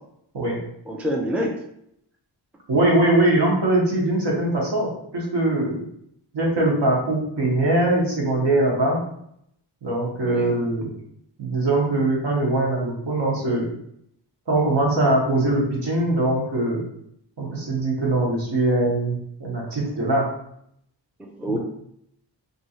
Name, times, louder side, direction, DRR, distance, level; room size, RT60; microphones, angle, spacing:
voice 1, 0.9-1.5 10.2-10.5 21.2-21.6, equal, 5° right, 0 dB, 0.4 m, -26 dB
voice 2, 2.7-5.8 6.3-9.0 9.8-10.9 11.4-13.7 14.5-16.8 17.4-20.2 21.5-21.6, right 2 dB, 70° right, -3 dB, 1.1 m, -22 dB
3.0 x 2.6 x 2.8 m, 0.73 s
wide cardioid pair, 95°, 44 cm